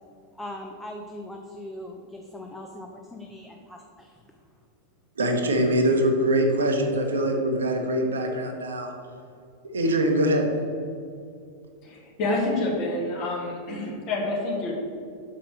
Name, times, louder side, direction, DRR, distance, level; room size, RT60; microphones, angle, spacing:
voice 1, 0.3-4.2, left 1 dB, 5° left, 1 dB, 0.7 m, -40 dB
voice 2, 5.2-8.9 9.6-10.5, right 1 dB, 70° right, 3 dB, 1.1 m, -23 dB
voice 3, 11.8-14.7, left 2 dB, 40° left, -1 dB, 2.2 m, -28 dB
6.4 x 5.8 x 6.3 m, 2.5 s
figure-of-eight pair, 90°, 0 cm